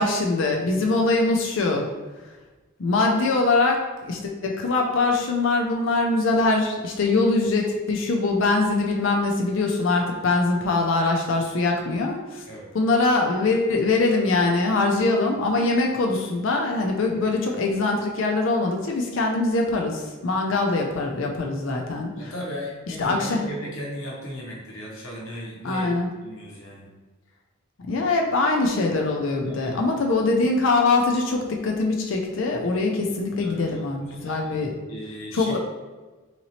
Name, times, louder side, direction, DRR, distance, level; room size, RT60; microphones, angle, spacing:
voice 1, 0.0-1.8 2.8-12.4 12.7-22.3 23.0-23.4 25.6-26.1 27.9-34.7 35.3-35.6, left 3 dB, 65° left, 1 dB, 0.5 m, -23 dB
voice 2, 22.1-25.9 26.2-26.9 29.4-30.0 33.3-35.6, equal, 80° left, -2 dB, 0.9 m, -37 dB
3.9 x 2.9 x 2.7 m, 1.2 s
head